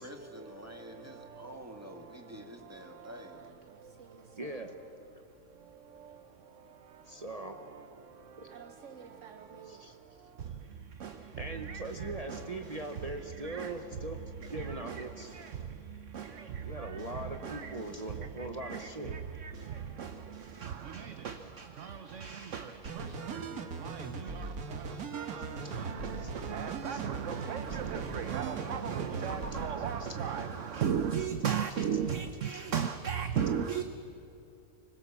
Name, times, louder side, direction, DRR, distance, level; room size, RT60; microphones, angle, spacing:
voice 1, 0.0-3.4, equal, 10° right, 1.9 m, -48 dB
voice 2, 4.4-4.8 7.1-7.6 8.4-8.5 9.6-9.9 11.4-14.2 14.5-15.4 16.6-19.2 25.6-25.7 26.2-26.3 26.8-27.1 27.7-27.8 29.3-30.2 32.5-32.6, right 1 dB, 30° right, 1.0 m, -41 dB
sound 1, 22.8-29.7, right 4 dB, 85° right, 1.8 m, -40 dB
voice 3, 26.5-27.0 27.5-28.4 28.7-30.4 30.8-32.2 32.7-33.8, right 8 dB, 60° right, 1.1 m, -32 dB
25.5 x 21.0 x 7.2 m
omnidirectional pair, 1.5 m